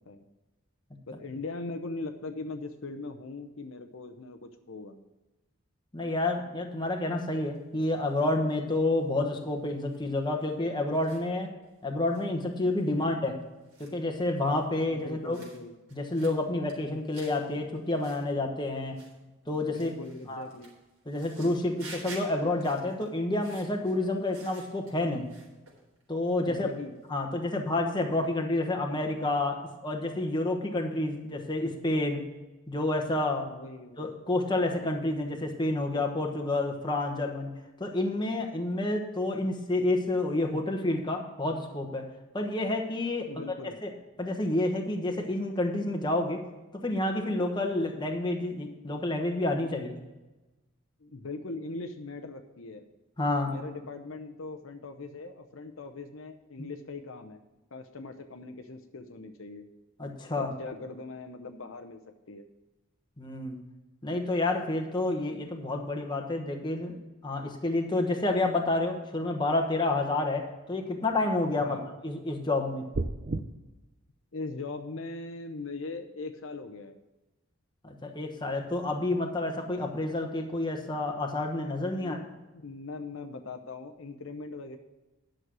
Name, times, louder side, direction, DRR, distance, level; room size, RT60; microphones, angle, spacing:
voice 1, 1.1-5.0 12.9-13.1 14.9-15.7 19.5-20.7 26.4-27.0 33.4-34.0 43.3-43.8 51.0-52.8 53.4-57.4 57.7-59.7 60.4-62.0 62.3-62.5 71.6-71.9 74.3-77.0 82.0-84.8, left 3 dB, 65° left, 6 dB, 0.8 m, -40 dB
voice 2, 5.9-11.5 11.8-13.4 13.8-15.4 15.9-19.0 19.5-19.9 20.3-20.4 21.1-25.3 26.1-26.7 27.1-29.6 29.8-32.2 32.7-33.4 34.0-37.5 37.8-42.1 42.3-43.4 43.8-43.9 44.2-46.4 46.7-49.9 53.2-53.5 56.6-56.7 60.0-60.5 63.2-63.6 64.0-67.0 67.2-71.8 72.0-72.8 77.8-82.2, left 2 dB, 20° left, 3 dB, 1.2 m, -29 dB
sound 1, 7.5-8.3 8.6-9.0 9.6-10.0 10.4-10.5 10.9-11.2 11.6-11.7 12.1-12.2 12.5-13.0 13.3-14.6 15.0-15.6 15.9-16.4 16.7-17.5 17.7-18.2 18.6-19.1 19.4-25.0 25.3-26.4 26.6-27.1, right 3 dB, 80° right, 3.7 m, -51 dB
sound 2, 72.9-73.4, right 2 dB, 45° right, 0.5 m, -30 dB
11.0 x 6.5 x 6.1 m, 1.1 s
head